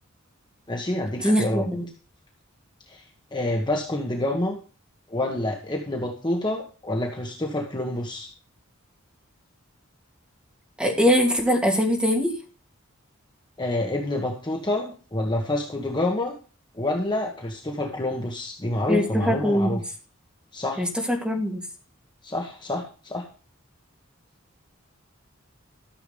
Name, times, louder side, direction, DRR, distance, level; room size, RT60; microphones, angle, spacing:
voice 1, 0.7-1.7 2.9-3.0 3.3-4.6 5.1-8.3 13.6-16.4 16.7-19.8 20.5-20.9 22.2-23.2, left 1 dB, 20° left, 1 dB, 1.5 m, -27 dB
voice 2, 1.2-1.9 10.8-12.3 18.9-19.7 20.8-21.6, equal, 5° right, 0 dB, 2.6 m, -22 dB
13.0 x 7.1 x 5.2 m, 0.37 s
head